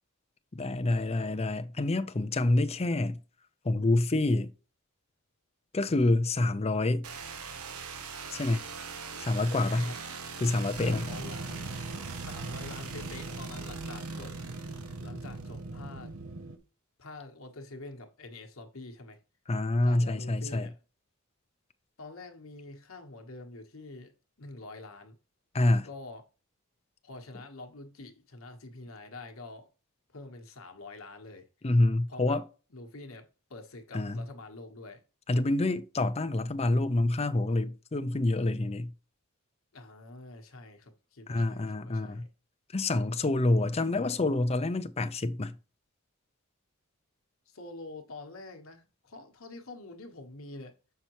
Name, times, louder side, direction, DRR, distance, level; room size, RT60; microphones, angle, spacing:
voice 1, 0.5-3.2 3.6-4.5 5.7-7.0 8.3-8.6 9.2-9.9 10.4-11.1 19.5-20.7 25.5-25.9 31.6-32.4 33.9-34.2 35.3-38.9 41.3-42.2 42.7-45.5, left 2 dB, 30° left, 0.6 m, -27 dB
sound 1, 7.0-15.8, right 5 dB, 85° right, 0.9 m, -42 dB
voice 2, 9.7-10.0 10.7-11.7 12.0-14.3 15.0-16.1 17.0-19.2 19.8-20.8 22.0-25.2 25.8-26.2 27.0-29.7 30.1-31.5 32.1-32.4 32.7-35.0 39.7-42.3 47.5-50.7, left 2 dB, 65° left, 1.2 m, -46 dB
sound 2, 10.7-16.6, right 2 dB, 60° right, 0.7 m, -40 dB
6.7 x 5.7 x 3.0 m
head